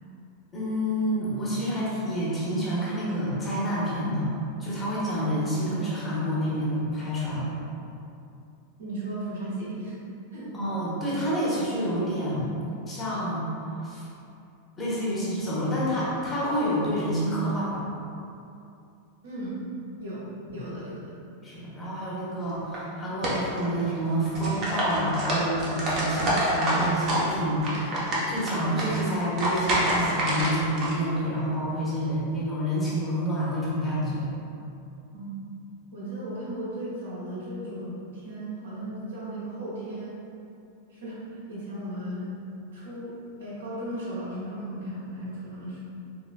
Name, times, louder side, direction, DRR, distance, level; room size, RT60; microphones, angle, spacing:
voice 1, 0.5-4.3 4.6-7.5 10.5-12.5 12.9-14.1 14.8-17.8 20.5-20.7 21.4-34.3, equal, 20° left, -8 dB, 1.1 m, -28 dB
voice 2, 8.8-9.9 10.3-10.5 19.2-19.5 20.0-20.2 20.5-21.1 35.1-35.3 35.9-40.2 40.9-42.3 42.7-45.8, right 1 dB, 65° right, -9 dB, 1.3 m, -36 dB
sound 1, 22.5-22.8 23.2-24.0 24.3-27.3 27.6-30.9, right 1 dB, 35° right, 0.9 m, -27 dB
3.8 x 3.8 x 2.3 m, 2.6 s
figure-of-eight pair, 90°, 0 cm